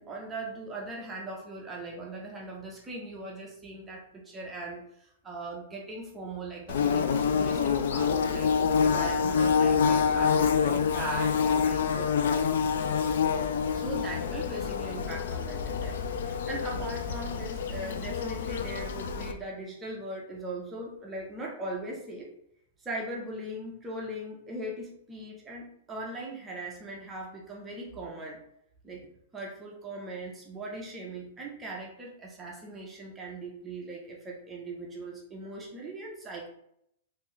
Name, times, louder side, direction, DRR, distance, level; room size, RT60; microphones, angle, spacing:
voice 1, 0.0-12.1 13.7-22.3 22.8-28.4 28.8-36.5, right 2 dB, 10° right, -2 dB, 0.4 m, -39 dB
Bird / Buzz, 6.7-19.3, left 6 dB, 65° left, 0.3 m, -27 dB
2.9 x 2.4 x 3.8 m, 0.73 s
supercardioid pair, 180°, 0 cm